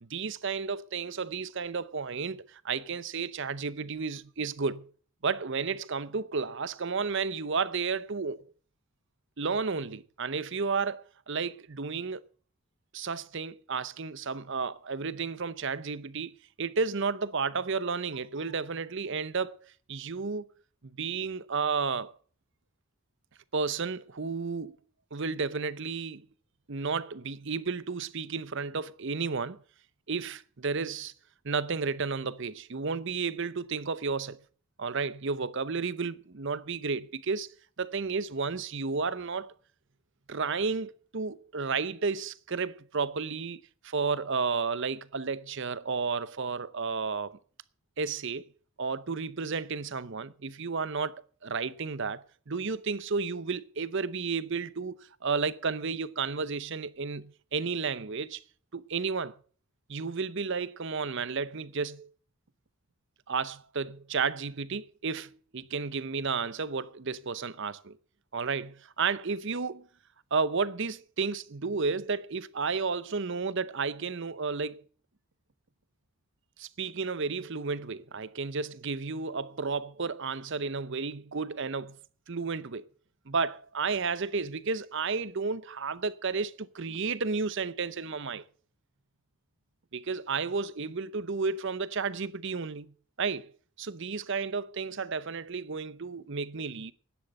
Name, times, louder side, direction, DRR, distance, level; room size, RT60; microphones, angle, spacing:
voice 1, 0.0-4.9 5.2-8.4 9.4-12.2 12.9-16.3 16.6-20.5 21.0-22.1 23.5-24.8 25.1-26.3 26.7-29.6 30.1-31.1 31.4-34.4 34.8-37.5 37.8-39.5 40.3-47.4 48.0-48.4 48.8-58.4 58.7-59.3 59.9-62.1 63.3-68.0 68.3-69.8 70.3-74.8 76.6-82.0 82.3-82.8 83.3-88.4 89.9-92.9 93.2-93.5 93.8-96.9, right 4 dB, 55° right, 0.7 m, -32 dB
11.5 x 10.0 x 6.5 m
head